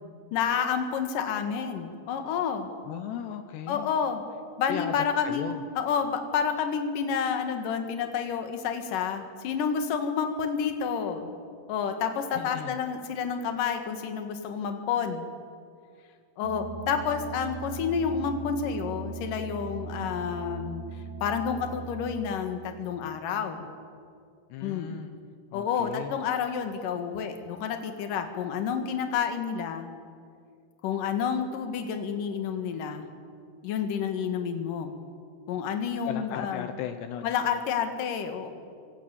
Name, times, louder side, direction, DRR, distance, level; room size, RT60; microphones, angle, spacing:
voice 1, 0.3-2.7 3.7-4.2 4.6-11.3 11.7-15.2 16.4-20.8 21.2-23.7 24.6-25.0 25.5-29.9 30.8-33.1 33.6-34.9 35.5-36.7 37.2-38.5, left 7 dB, 55° left, 6 dB, 3.1 m, -29 dB
voice 2, 2.8-3.9 4.7-4.9 5.2-5.6 12.3-12.8 24.5-25.1 25.5-26.2 36.1-37.3, left 10 dB, 80° left, 7 dB, 3.0 m, -36 dB
sound 1, 16.4-22.2, right 4 dB, 75° right, 4.3 m, -39 dB
27.5 x 24.5 x 7.1 m, 2.3 s
omnidirectional pair, 5.0 m